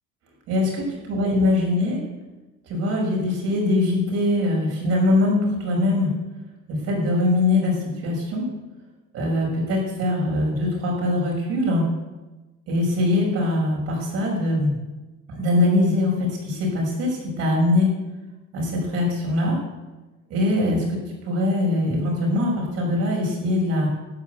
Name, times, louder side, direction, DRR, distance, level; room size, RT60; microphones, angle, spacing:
voice 1, 0.5-2.0 2.7-6.1 6.7-7.7 8.0-8.4 9.1-11.9 12.7-14.7 15.3-17.9 18.5-19.6 20.3-21.0 21.2-23.9, left 2 dB, 55° right, -2 dB, 6.3 m, -22 dB
12.5 x 9.7 x 8.2 m, 1.1 s
cardioid pair, 165°, 29 cm